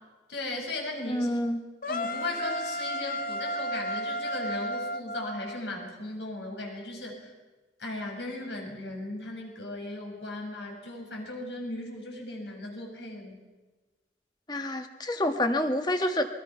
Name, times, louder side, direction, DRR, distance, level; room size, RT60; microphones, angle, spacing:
voice 1, 0.3-1.3 1.9-7.3 7.8-13.4, left 2 dB, 70° left, 1 dB, 6.5 m, -37 dB
voice 2, 1.1-1.6 14.5-16.3, left 1 dB, 20° left, 6 dB, 1.6 m, -28 dB
sound 1, 1.8-5.9, equal, 45° left, 0.9 m, -33 dB
27.5 x 23.0 x 5.8 m, 1.2 s
head